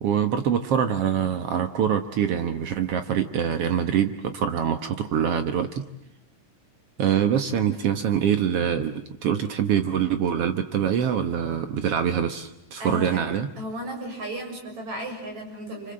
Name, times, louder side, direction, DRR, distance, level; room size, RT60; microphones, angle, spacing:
voice 1, 0.0-5.8 7.0-8.9 9.2-13.5, right 8 dB, 80° right, 8 dB, 1.3 m, -24 dB
voice 2, 12.8-13.2 13.6-15.9, right 1 dB, 45° right, 2 dB, 7.9 m, -34 dB
30.0 x 26.0 x 7.7 m, 0.84 s
omnidirectional pair, 4.5 m